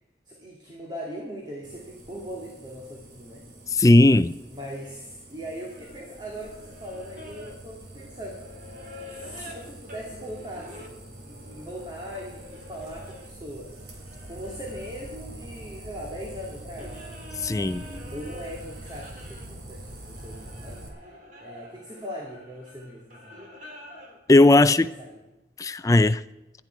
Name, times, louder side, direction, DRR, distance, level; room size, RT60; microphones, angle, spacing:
voice 1, 0.3-3.4 4.5-8.4 9.1-13.7 14.2-17.0 18.1-21.1 21.4-23.4 24.8-25.1, equal, 25° right, -2 dB, 2.3 m, -40 dB
sound 1, 1.6-20.9, right 1 dB, 75° right, 3.2 m, -44 dB
voice 2, 3.7-4.3 17.4-18.0 24.3-24.9 25.6-26.2, left 2 dB, 20° left, 14 dB, 0.4 m, -17 dB
sound 2, 5.7-13.3 13.7-24.2, left 1 dB, 45° right, 3.1 m, -47 dB
18.0 x 12.0 x 4.6 m, 1.0 s
head